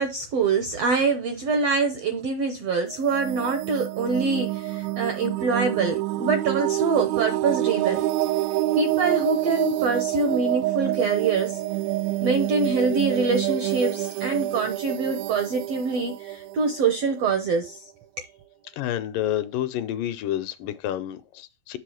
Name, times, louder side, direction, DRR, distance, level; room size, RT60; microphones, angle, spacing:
voice 1, 0.0-8.0 8.8-11.6 12.2-17.9, right 4 dB, 75° right, 1.5 m, -25 dB
sound 1, 2.9-17.6, right 15 dB, 90° right, 2.6 m, -27 dB
voice 2, 18.8-21.8, left 12 dB, 75° left, 2.2 m, -29 dB
7.6 x 3.6 x 6.4 m
omnidirectional pair, 4.2 m